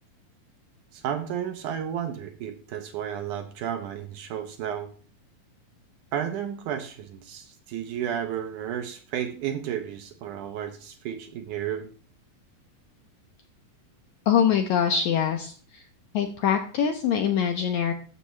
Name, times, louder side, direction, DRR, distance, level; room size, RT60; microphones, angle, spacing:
voice 1, 0.9-4.9 6.1-11.9, right 9 dB, 75° right, 7 dB, 2.0 m, -32 dB
voice 2, 14.3-15.8 16.1-17.9, left 8 dB, 75° left, 5 dB, 1.7 m, -24 dB
14.0 x 6.8 x 3.2 m, 0.40 s
omnidirectional pair, 4.1 m